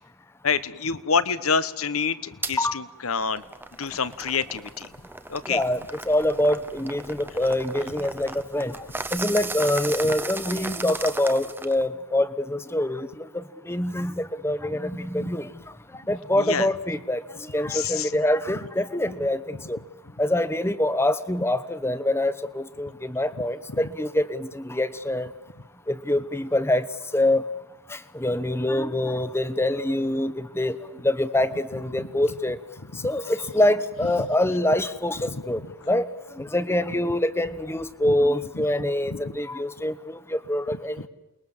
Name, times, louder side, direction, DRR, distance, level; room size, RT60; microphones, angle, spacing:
voice 1, 0.4-3.4 3.8-4.9 5.3-5.6 15.2-15.3 16.4-16.7 17.6-18.1 32.0-32.1 32.9-33.0 34.2-34.3 35.3-35.4 38.0-38.2 38.5-38.7 39.1-39.3 41.0-41.1, left 5 dB, 80° left, 15 dB, 1.2 m, -27 dB
sound 1, 2.4-2.6 3.1-11.9, right 3 dB, 10° right, 0.9 m, -36 dB
voice 2, 5.5-8.7 9.1-13.1 13.3-15.5 16.1-17.2 17.5-19.8 20.2-25.3 25.9-26.8 27.1-27.4 27.9-30.7 31.0-32.6 33.0-35.6 35.9-36.1 36.4-41.0, left 1 dB, 10° left, 14 dB, 1.1 m, -25 dB
28.5 x 21.5 x 7.4 m, 1.1 s
head